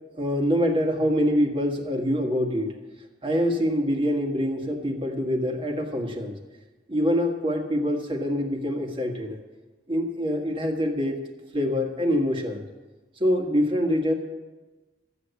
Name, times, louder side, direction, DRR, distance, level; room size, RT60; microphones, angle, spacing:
voice 1, 0.2-2.8 3.2-6.4 6.9-9.4 9.9-11.2 11.5-12.6 13.2-14.1, equal, 30° right, 3 dB, 1.7 m, -25 dB
13.5 x 8.2 x 8.3 m, 1.2 s
head